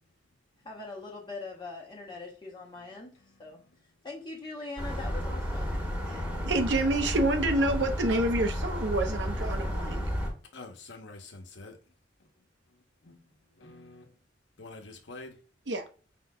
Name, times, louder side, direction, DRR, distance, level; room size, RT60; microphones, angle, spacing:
voice 1, 0.6-3.1 3.4-3.6 4.0-5.8, left 3 dB, 25° left, 0.8 m, -42 dB
voice 2, 3.3-3.8 5.6-6.6 10.5-11.8 12.2-12.3 12.7-14.1 14.6-15.4, left 3 dB, 75° left, 0.9 m, -48 dB
sound 1, 4.8-10.3, equal, 5° right, 1.2 m, -32 dB
voice 3, 6.1-10.0 15.7-15.8, right 2 dB, 70° right, 0.8 m, -28 dB
5.1 x 3.7 x 2.2 m
head